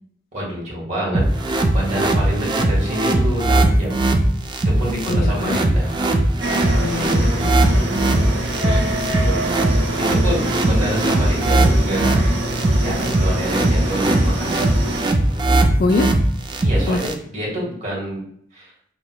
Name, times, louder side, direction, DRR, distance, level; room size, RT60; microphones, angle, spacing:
voice 1, 0.3-4.0 4.6-5.9 9.2-9.5 10.1-12.2 12.7-14.8 16.6-18.2 18.5-18.7, equal, 40° right, -4 dB, 1.6 m, -27 dB
sound 1, 1.1-17.1, right 1 dB, 25° right, 0.4 m, -19 dB
voice 2, 5.1-5.6 6.8-8.2 15.8-16.1 16.9-17.0, left 3 dB, 50° left, 8 dB, 0.3 m, -24 dB
sound 2, 6.4-15.0, right 1 dB, 60° right, 0.7 m, -26 dB
5.9 x 2.8 x 2.2 m, 0.65 s
head